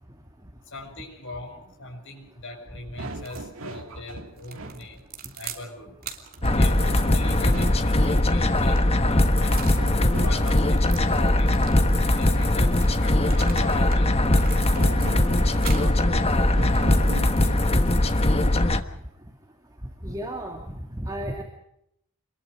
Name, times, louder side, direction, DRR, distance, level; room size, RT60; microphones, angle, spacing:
voice 1, 0.6-5.0 5.4-5.9 6.5-8.8 9.0-9.7 10.2-12.7 13.0-14.7 15.8-16.2, left 2 dB, 60° left, 0 dB, 7.0 m, -40 dB
sound 1, 3.0-4.8 6.4-8.1 9.4-10.7 14.4-17.7, right 2 dB, 65° right, 2.4 m, -39 dB
sound 2, 3.2-3.5 4.4-5.7 6.0-9.9 10.3-14.0 14.3-15.1 15.6-15.9 16.5-18.6, right 8 dB, 45° right, 3.2 m, -43 dB
sound 3, 6.4-18.8, left 1 dB, 25° left, 1.3 m, -21 dB
voice 2, 20.0-20.6 21.0-21.4, right 1 dB, 15° right, 2 dB, 2.4 m, -33 dB
28.0 x 22.0 x 5.1 m, 0.79 s
head